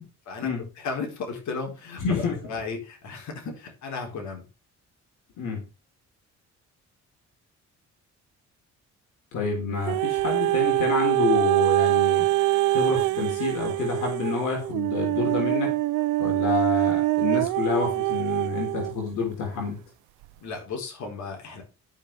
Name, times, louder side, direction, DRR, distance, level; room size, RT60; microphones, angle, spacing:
voice 1, 0.8-4.4 20.4-21.6, left 4 dB, 70° left, 1 dB, 4.4 m, -34 dB
voice 2, 2.0-2.4 5.4-5.6 9.3-12.3 12.7-15.8 16.2-19.8, left 5 dB, 90° left, 0 dB, 4.1 m, -28 dB
sound 1, 9.9-19.0 19.6-19.7, right 16 dB, 85° right, 0.5 m, -24 dB
12.5 x 6.5 x 3.5 m, 0.31 s
cardioid pair, 90°, 30 cm